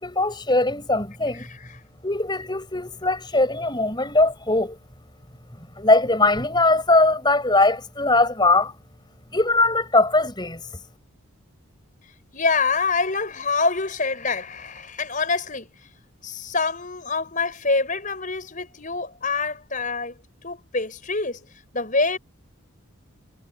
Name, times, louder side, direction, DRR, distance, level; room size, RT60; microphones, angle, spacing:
voice 1, 0.0-1.5 2.0-4.8 5.8-8.7 9.3-10.6, left 2 dB, 20° left, 5.4 m, -20 dB
voice 2, 1.3-1.8 12.3-15.7 16.2-20.2 20.4-21.4 21.7-22.2, left 4 dB, 35° left, 5.7 m, -26 dB
head